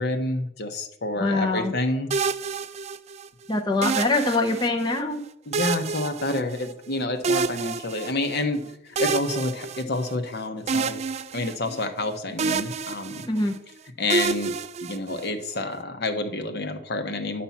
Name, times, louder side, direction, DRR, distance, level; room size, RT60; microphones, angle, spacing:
voice 1, 0.0-2.1 5.5-11.0 11.3-13.3 14.0-14.5 14.8-17.4, left 2 dB, 55° left, 6 dB, 1.0 m, -28 dB
voice 2, 1.2-1.7 3.5-5.2 13.3-13.6, left 2 dB, 20° left, 2 dB, 0.7 m, -23 dB
sound 1, 2.1-3.3 3.8-5.0 5.5-6.9 7.2-8.4 9.0-10.3 10.7-12.1 12.4-13.6 14.1-15.5, right 5 dB, 35° right, 0.3 m, -28 dB
10.5 x 4.3 x 7.2 m, 0.78 s
head